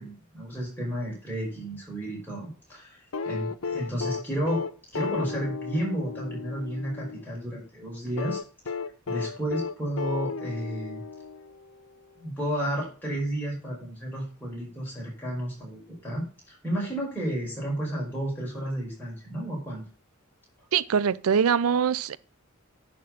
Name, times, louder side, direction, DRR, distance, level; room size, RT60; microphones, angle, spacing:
voice 1, 0.0-3.0 3.3-4.6 4.9-8.4 9.1-11.0 12.2-19.8, right 1 dB, 10° left, 5.1 m, -32 dB
sound 1, 3.1-7.2 8.2-11.8 13.2-13.3, left 5 dB, 75° left, 0.7 m, -34 dB
voice 2, 20.7-22.2, right 7 dB, 90° right, 0.5 m, -23 dB
10.5 x 4.5 x 5.9 m
head